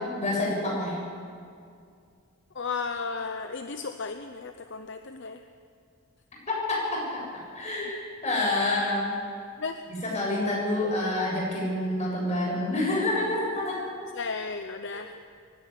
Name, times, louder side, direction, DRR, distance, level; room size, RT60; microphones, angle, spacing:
voice 1, 0.2-0.9 6.5-7.0 7.5-9.1 10.0-13.8, left 1 dB, 30° left, -4 dB, 7.5 m, -27 dB
voice 2, 2.5-5.4 9.6-9.8 14.1-15.1, left 4 dB, 55° left, 7 dB, 0.8 m, -34 dB
24.0 x 11.0 x 10.0 m, 2.3 s
head